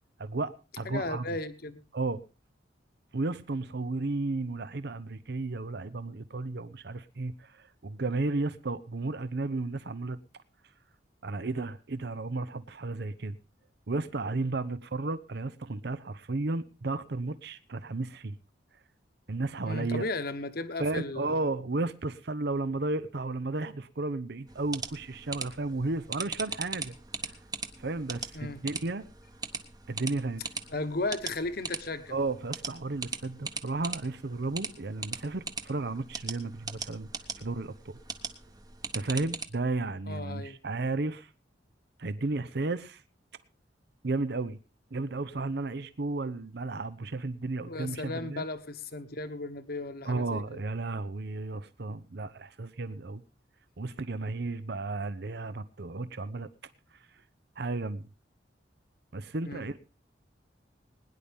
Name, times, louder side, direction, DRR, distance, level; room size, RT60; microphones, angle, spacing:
voice 1, 0.2-1.3 1.9-2.2 3.1-10.2 11.2-13.4 13.9-18.4 19.3-20.1 20.8-26.9 27.3-27.4 27.8-29.1 29.9-30.4 32.1-37.1 37.4-37.9 38.9-41.3 42.0-43.0 44.0-44.6 44.9-48.4 50.0-53.2 53.8-56.5 57.6-58.1 59.1-59.8, right 3 dB, 60° right, 14 dB, 0.7 m, -33 dB
voice 2, 0.8-1.8 19.6-21.5 28.3-28.6 30.7-32.2 40.1-40.6 47.6-50.6 59.4-59.7, left 2 dB, 55° left, 10 dB, 1.2 m, -35 dB
sound 1, 24.5-39.4, right 4 dB, 20° right, 1.0 m, -40 dB
21.0 x 10.5 x 3.6 m, 0.32 s
head